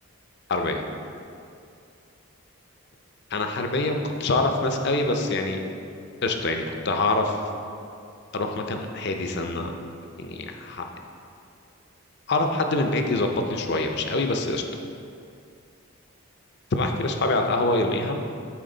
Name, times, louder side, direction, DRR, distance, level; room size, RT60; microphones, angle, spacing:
voice 1, 0.5-0.8 3.3-5.6 6.2-7.4 8.3-9.7 10.1-10.8 12.3-14.6 16.7-18.2, left 2 dB, 50° left, 4 dB, 0.5 m, -25 dB
9.4 x 4.0 x 3.9 m, 2.5 s
head